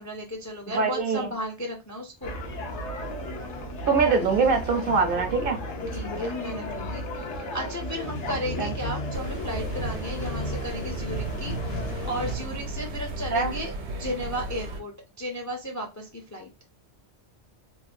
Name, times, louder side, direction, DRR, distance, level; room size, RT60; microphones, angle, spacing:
voice 1, 0.0-2.3 5.9-7.0 7.3-16.5, equal, 30° left, 0.3 m, -34 dB
voice 2, 0.7-1.3 3.9-5.6 8.6-8.7 13.3-13.5, right 5 dB, 60° right, 0.7 m, -23 dB
sound 1, 2.2-12.4, left 1 dB, 80° left, 1.0 m, -33 dB
sound 2, 9.1-14.8, right 1 dB, 75° right, 1.0 m, -35 dB
3.1 x 2.1 x 2.5 m
omnidirectional pair, 1.2 m